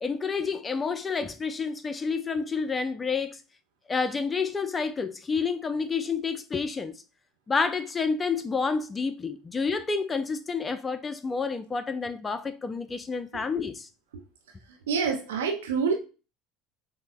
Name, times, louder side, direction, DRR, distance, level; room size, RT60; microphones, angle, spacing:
voice 1, 0.0-3.4 3.9-7.0 7.5-13.9, left 5 dB, 25° left, 0.4 m, -29 dB
voice 2, 14.9-15.9, right 5 dB, 80° right, 0.5 m, -27 dB
5.5 x 2.1 x 2.2 m
hypercardioid pair, 75°, 0 cm